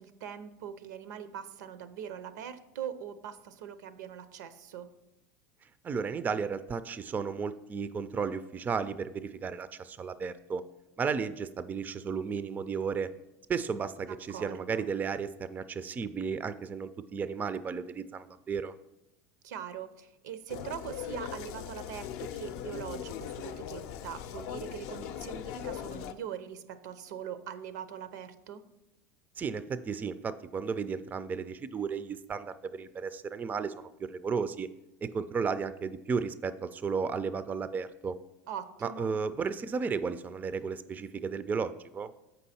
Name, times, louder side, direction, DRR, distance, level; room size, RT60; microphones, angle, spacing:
voice 1, 0.0-4.9 14.1-14.9 19.4-28.6 38.5-39.1, right 8 dB, 85° right, 13 dB, 0.6 m, -42 dB
voice 2, 5.8-10.6 11.0-13.1 13.5-18.7 29.4-34.7 35.0-38.2 38.8-42.1, right 5 dB, 20° right, 14 dB, 0.3 m, -34 dB
sound 1, 20.5-26.1, left 10 dB, 65° left, 0.5 m, -40 dB
7.7 x 5.5 x 4.2 m, 0.92 s
supercardioid pair, 115°, 9 cm